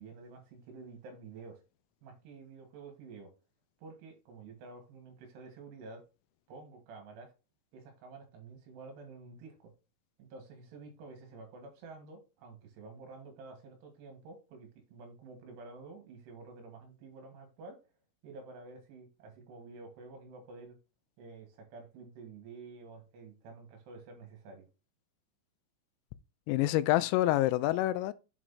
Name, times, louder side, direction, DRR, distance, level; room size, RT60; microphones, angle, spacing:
voice 1, 0.0-1.6 2.0-3.3 3.8-6.0 6.5-7.3 7.7-9.7 10.2-17.8 18.2-20.8 21.2-24.7, right 3 dB, 65° right, 3.1 m, -50 dB
voice 2, 26.5-28.1, left 15 dB, 85° left, 3.2 m, -27 dB
8.1 x 6.0 x 2.8 m
omnidirectional pair, 6.0 m